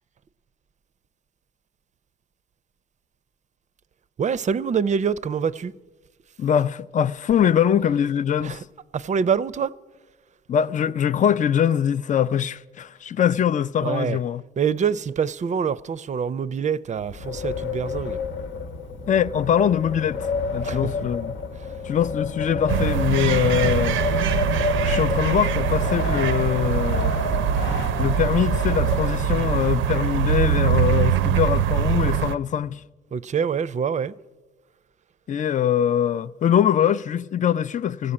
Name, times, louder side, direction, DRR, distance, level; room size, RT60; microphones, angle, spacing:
voice 1, 4.2-5.7 8.4-8.6 8.9-9.7 13.8-14.2 14.6-18.2 20.6-20.8 33.1-34.1, right 7 dB, 35° right, 0.5 m, -25 dB
voice 2, 6.4-8.6 10.5-14.4 19.1-21.3 21.8-24.4 24.8-27.2 28.0-32.8 35.3-38.1, left 9 dB, 40° left, 0.5 m, -23 dB
Wind, 17.0-29.6, left 3 dB, 75° left, 1.1 m, -29 dB
sound 1, 22.7-32.3, right 9 dB, 80° right, 0.5 m, -23 dB
15.0 x 8.3 x 8.8 m
cardioid pair, 90°, 20 cm